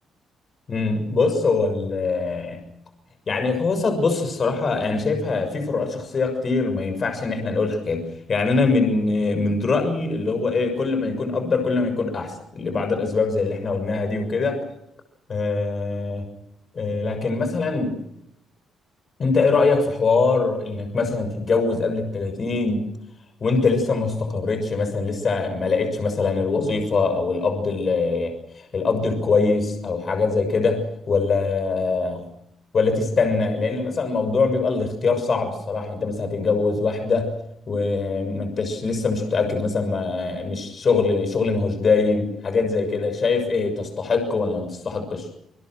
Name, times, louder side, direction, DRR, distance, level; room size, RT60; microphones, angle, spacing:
voice 1, 0.7-2.6 3.3-14.6 15.3-16.3 16.7-17.9 19.2-22.9 23.4-32.3 32.7-37.3 37.7-45.3, left 4 dB, 45° left, 7 dB, 6.6 m, -23 dB
28.0 x 21.5 x 6.3 m, 0.76 s
cardioid pair, 90°, 0 cm